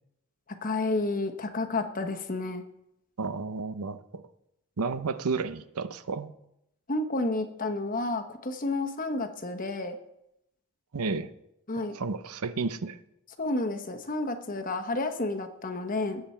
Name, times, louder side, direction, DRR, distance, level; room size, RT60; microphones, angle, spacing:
voice 1, 0.6-2.6 6.9-10.0 11.7-11.9 13.4-16.2, left 2 dB, 35° left, 7 dB, 1.1 m, -30 dB
voice 2, 3.2-4.2 4.8-6.3 10.9-11.3 11.8-13.0, right 4 dB, 85° right, 12 dB, 0.7 m, -32 dB
19.0 x 7.8 x 4.4 m, 0.83 s
head